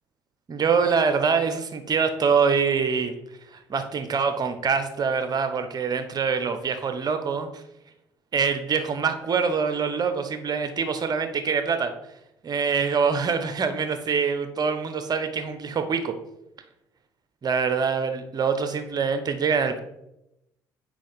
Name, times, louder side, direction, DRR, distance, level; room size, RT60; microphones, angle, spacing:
voice 1, 0.5-3.1 3.7-7.6 8.3-11.9 12.4-16.2 17.4-19.8, right 5 dB, 40° right, 8 dB, 1.0 m, -24 dB
5.2 x 4.9 x 5.3 m, 0.86 s
hypercardioid pair, 50°, 10 cm